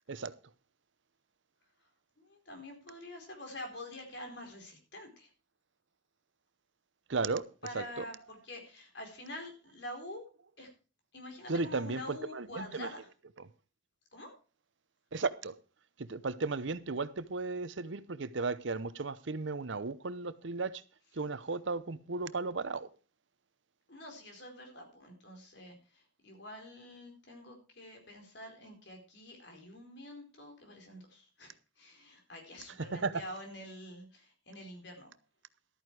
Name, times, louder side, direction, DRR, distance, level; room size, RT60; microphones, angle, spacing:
voice 1, 2.2-5.3 7.6-10.2 10.6-10.7 11.1-13.1 14.1-14.3 23.9-35.1, left 1 dB, 60° left, 4.4 m, -47 dB
voice 2, 7.1-7.5 7.7-8.0 11.5-12.9 15.1-15.6 16.0-20.8 21.1-22.9 32.9-33.2, right 3 dB, 70° right, 0.8 m, -35 dB
13.0 x 9.3 x 4.8 m
head